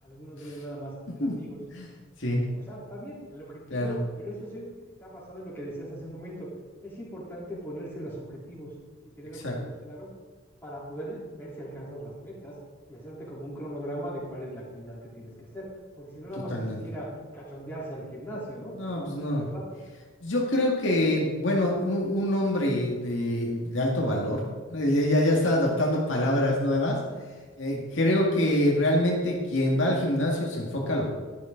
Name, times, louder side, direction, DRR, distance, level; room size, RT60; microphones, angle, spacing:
voice 1, 0.0-1.6 2.3-6.5 6.8-8.7 9.0-10.1 10.6-12.6 12.9-15.7 16.0-18.7 19.3-19.7 27.8-28.1, equal, 10° left, -7 dB, 3.6 m, -39 dB
voice 2, 16.5-16.8 18.8-19.5 20.2-24.4 24.7-27.0 27.6-31.1, left 1 dB, 65° left, -2 dB, 1.9 m, -25 dB
12.0 x 11.5 x 3.9 m, 1.4 s
head